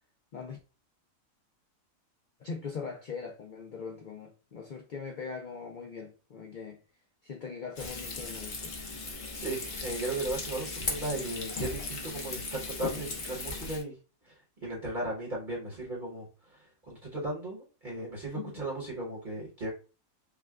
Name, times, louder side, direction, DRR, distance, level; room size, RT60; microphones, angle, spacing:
voice 1, 2.4-6.8 7.2-8.7 18.3-18.6, left 5 dB, 60° left, 0.5 m, -41 dB
Frying (food), 7.8-13.8, left 3 dB, 45° left, 0.9 m, -37 dB
voice 2, 9.4-13.9 14.2-16.6 16.9-19.7, right 2 dB, 35° right, 1.2 m, -36 dB
5.6 x 2.3 x 2.3 m
omnidirectional pair, 1.5 m